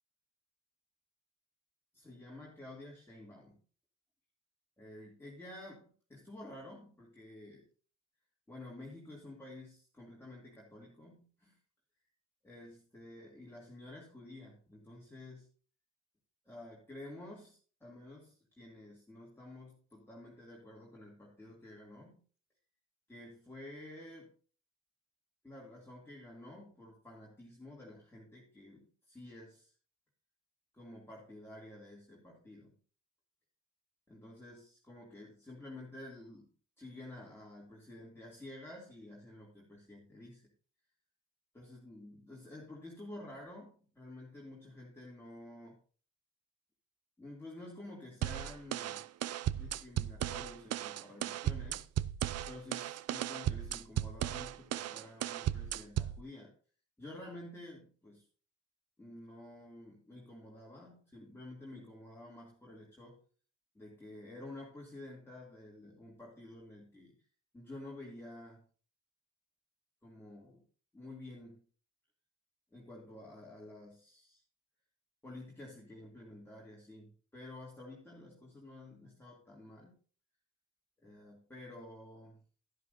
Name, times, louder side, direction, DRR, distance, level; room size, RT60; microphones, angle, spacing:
voice 1, 1.9-3.6 4.8-7.7 8.5-11.6 12.4-15.5 16.4-22.2 23.1-24.3 25.4-29.7 30.7-32.7 34.1-36.5 36.8-40.4 41.5-45.8 47.2-49.0 49.4-51.9 52.5-56.5 57.0-58.2 59.0-63.2 63.7-67.2 67.5-68.6 70.0-70.6 70.9-71.6 72.7-74.4 75.2-80.0 81.0-82.4, left 1 dB, 10° left, -4 dB, 2.7 m, -51 dB
sound 1, 48.2-56.2, right 12 dB, 55° right, 0.5 m, -36 dB
11.5 x 11.0 x 2.7 m, 0.41 s
cardioid pair, 90°, 30 cm